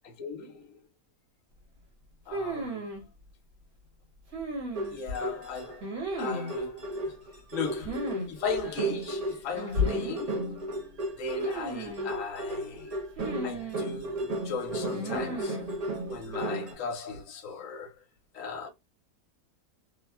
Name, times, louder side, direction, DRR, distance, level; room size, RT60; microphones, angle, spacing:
voice 1, 0.2-0.8 2.3-2.9 4.9-7.2 7.5-10.6 11.2-12.9 13.4-15.6 16.1-18.0 18.3-18.7, left 3 dB, 65° left, 1.1 m, -37 dB
sound 1, 2.3-3.0 4.3-5.1 5.8-6.5 7.8-8.3 8.5-8.6 9.5-10.2 11.4-12.1 13.2-13.9 14.9-15.7, left 1 dB, 80° right, 1.9 m, -34 dB
sound 2, 4.7-5.8 6.1-16.7, right 1 dB, 40° right, 0.6 m, -35 dB
3.4 x 2.0 x 2.3 m
omnidirectional pair, 1.6 m